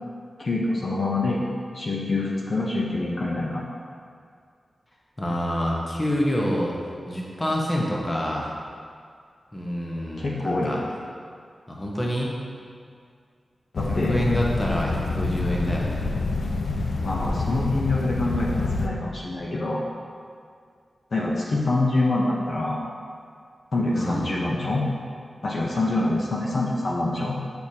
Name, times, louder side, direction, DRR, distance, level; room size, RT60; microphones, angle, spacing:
voice 1, 0.4-1.5 1.7-3.6 10.2-10.8 13.7-14.2 17.0-19.9 21.1-22.8 23.7-24.8 25.4-27.4, left 2 dB, 50° left, -4 dB, 0.7 m, -25 dB
voice 2, 5.2-6.7 7.1-8.5 9.5-10.8 11.7-12.4 14.1-16.1 23.9-24.3, equal, 20° left, -3 dB, 1.0 m, -27 dB
sound 1, 13.7-18.9, left 3 dB, 80° left, 0.4 m, -27 dB
6.9 x 6.1 x 2.8 m, 2.2 s
wide cardioid pair, 120°, 0 cm